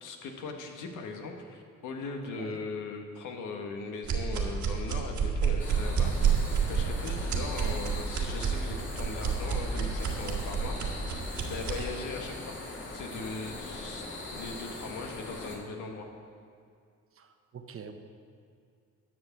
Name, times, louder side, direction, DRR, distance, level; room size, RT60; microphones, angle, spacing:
voice 1, 0.0-10.8 11.4-12.6 12.9-14.0 14.3-16.1, left 4 dB, 80° left, 3 dB, 1.5 m, -39 dB
sound 1, 4.0-11.9, right 7 dB, 70° right, 1.7 m, -29 dB
sound 2, 5.6-15.6, left 2 dB, 40° left, 2.4 m, -41 dB
voice 2, 17.2-17.9, right 7 dB, 45° right, 6 dB, 1.1 m, -45 dB
11.0 x 6.3 x 7.2 m, 2.3 s
cardioid pair, 90°, 30 cm